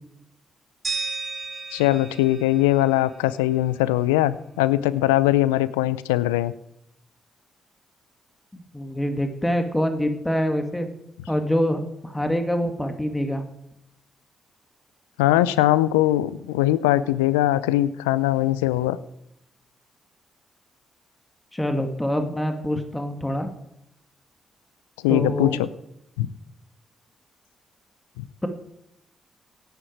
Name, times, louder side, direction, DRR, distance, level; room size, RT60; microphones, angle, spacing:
sound 1, 0.8-3.8, right 4 dB, 40° right, 5.6 m, -34 dB
voice 1, 1.7-6.5 15.2-19.0 25.0-25.7 26.2-26.3, left 15 dB, 85° left, 18 dB, 0.5 m, -21 dB
voice 2, 8.5-10.9 11.3-13.4 21.5-23.5 25.1-25.6, equal, 10° left, 6 dB, 2.4 m, -25 dB
17.0 x 10.0 x 4.7 m, 0.79 s
hypercardioid pair, 40°, 0 cm